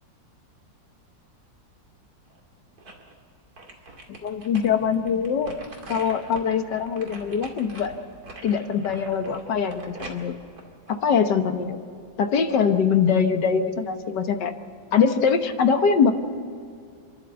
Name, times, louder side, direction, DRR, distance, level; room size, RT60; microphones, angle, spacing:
sound 1, 2.3-3.1 3.6-11.6 12.0-12.1, right 2 dB, 55° right, 2.8 m, -43 dB
voice 1, 4.2-5.5 5.9-7.9 8.4-10.3 10.9-11.8 12.2-14.5 14.9-16.1, left 6 dB, 70° left, 7 dB, 1.7 m, -22 dB
28.5 x 11.5 x 8.0 m, 2.3 s
omnidirectional pair, 2.0 m